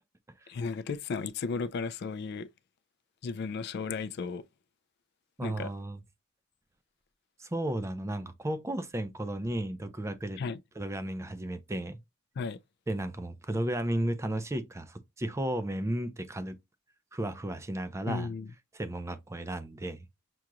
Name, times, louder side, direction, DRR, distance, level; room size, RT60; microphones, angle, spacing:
voice 1, 0.5-2.5 3.2-4.4 5.4-5.7 10.4-10.6 12.4-12.6 18.1-18.5, left 4 dB, 55° left, 0.3 m, -34 dB
voice 2, 5.4-6.0 7.4-10.4 10.8-12.0 12.9-16.6 17.1-18.3 18.7-20.0, right 1 dB, 15° right, 0.4 m, -34 dB
6.0 x 2.8 x 2.4 m
head